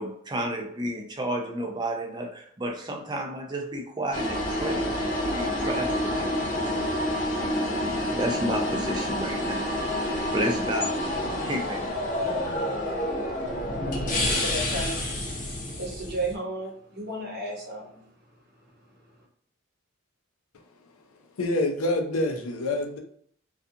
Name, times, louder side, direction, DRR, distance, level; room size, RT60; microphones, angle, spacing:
voice 1, 0.0-9.7 10.3-11.0 11.3-11.9, right 1 dB, 20° right, 2 dB, 0.4 m, -32 dB
sound 1, 4.1-16.4, left 1 dB, 40° left, 0.6 m, -28 dB
voice 2, 14.1-15.0 15.8-18.0, right 1 dB, 50° right, -2 dB, 0.8 m, -33 dB
voice 3, 21.4-23.0, left 1 dB, 85° left, 4 dB, 0.5 m, -26 dB
2.5 x 2.3 x 2.6 m, 0.65 s
head